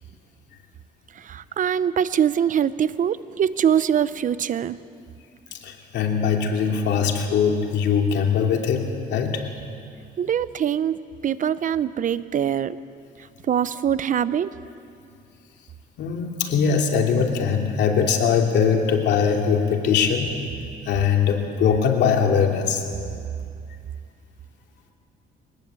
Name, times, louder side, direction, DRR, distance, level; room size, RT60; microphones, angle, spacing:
voice 1, 1.2-4.8 10.2-11.0 11.2-12.8 13.5-14.5, right 9 dB, 45° right, 16 dB, 0.7 m, -23 dB
voice 2, 5.5-9.4 16.0-20.3 20.9-22.8, left 6 dB, 75° left, 2 dB, 2.9 m, -21 dB
22.5 x 19.5 x 8.2 m, 2.4 s
cardioid pair, 100°, 18 cm